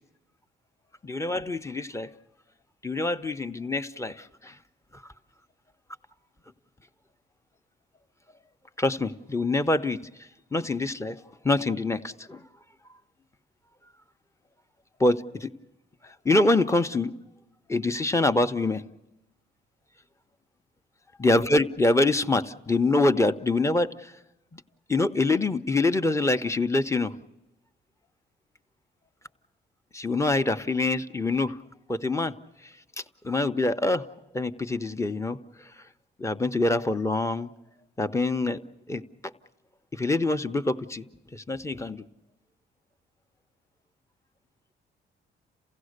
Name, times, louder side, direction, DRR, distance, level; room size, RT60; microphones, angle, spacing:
voice 1, 1.0-2.1 2.8-4.5 4.9-5.0 8.8-10.0 10.5-11.2 11.4-12.4 15.0-15.5 16.0-17.1 17.7-18.8 21.2-24.1 24.5-24.6 24.9-27.1 29.9-31.6 31.9-32.3 33.2-34.0 34.3-35.4 36.2-37.5 38.0-38.6 38.9-39.0 39.9-41.0 41.3-42.1, left 2 dB, 15° left, 8 dB, 0.8 m, -25 dB
28.0 x 16.0 x 6.6 m, 1.0 s
cardioid pair, 90°, 20 cm